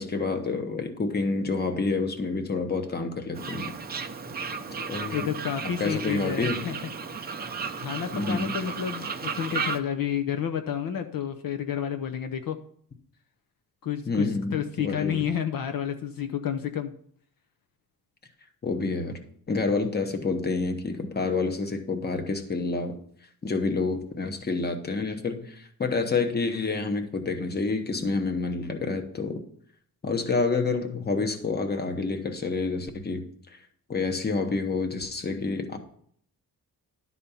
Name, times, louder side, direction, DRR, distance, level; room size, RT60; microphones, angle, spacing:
voice 1, 0.0-3.7 4.8-5.4 5.8-6.6 8.1-8.5 14.1-15.3 18.6-23.0 23.4-29.4 30.0-33.6 33.9-35.8, left 3 dB, 25° left, 6 dB, 1.0 m, -28 dB
Fowl, 3.3-9.8, right 5 dB, 25° right, 0.6 m, -34 dB
voice 2, 5.1-6.7 7.2-7.4 7.8-12.6 13.8-16.9, left 9 dB, 65° left, 7 dB, 0.7 m, -30 dB
11.5 x 4.2 x 6.9 m, 0.63 s
wide cardioid pair, 170°, 37 cm